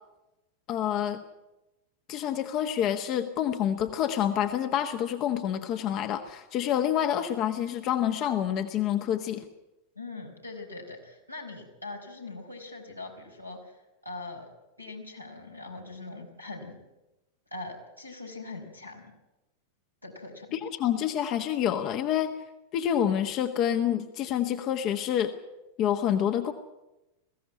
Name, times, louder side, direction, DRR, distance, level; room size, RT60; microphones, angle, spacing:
voice 1, 0.7-1.2 2.1-9.4 20.5-22.3 22.7-25.3 25.8-26.5, left 10 dB, 35° left, 7 dB, 1.3 m, -27 dB
voice 2, 9.9-14.5 14.8-16.8 17.5-19.1 20.0-20.6, left 3 dB, 90° left, -1 dB, 5.0 m, -42 dB
21.5 x 16.0 x 9.6 m, 1.0 s
figure-of-eight pair, 90°, 0 cm